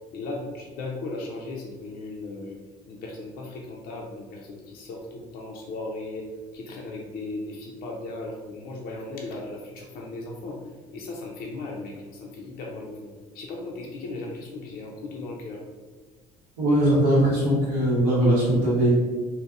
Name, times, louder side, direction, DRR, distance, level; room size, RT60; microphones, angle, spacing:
voice 1, 0.1-2.6 2.9-15.6, left 2 dB, 55° left, -1 dB, 0.4 m, -37 dB
voice 2, 16.6-18.9, right 1 dB, 80° right, -10 dB, 1.0 m, -20 dB
2.8 x 2.1 x 2.4 m, 1.4 s
hypercardioid pair, 60°, 19 cm